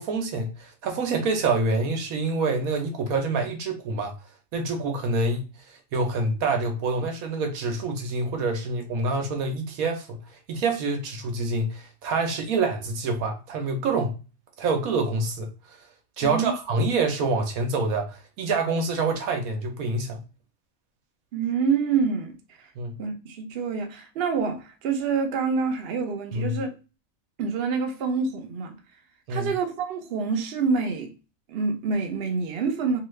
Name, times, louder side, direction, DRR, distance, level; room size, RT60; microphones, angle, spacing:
voice 1, 0.0-4.1 4.5-5.4 5.9-10.2 10.5-14.1 14.6-15.5 16.2-20.2 22.8-23.0 26.3-26.6 29.3-29.5, right 3 dB, 85° right, 1.2 m, -26 dB
voice 2, 16.2-16.5 21.3-22.4 23.0-26.7 27.4-28.8 29.3-31.1 31.5-33.0, right 5 dB, 55° right, 0.7 m, -27 dB
2.9 x 2.3 x 3.2 m
omnidirectional pair, 1.5 m